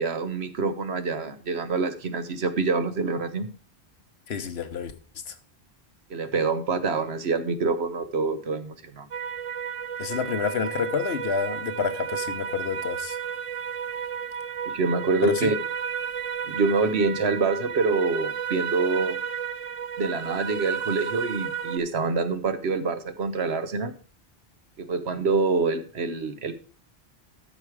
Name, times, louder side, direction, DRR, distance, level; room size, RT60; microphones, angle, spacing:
voice 1, 0.0-3.5 6.1-9.1 14.7-15.5 16.5-19.2 20.0-23.9 24.8-26.5, right 4 dB, 80° right, 1.2 m, -26 dB
voice 2, 4.3-4.9 5.3-5.4 10.0-13.2 15.2-15.5, left 7 dB, 75° left, 1.2 m, -29 dB
sound 1, 9.1-21.8, right 7 dB, 50° right, 0.4 m, -32 dB
13.0 x 4.9 x 4.8 m
omnidirectional pair, 1.1 m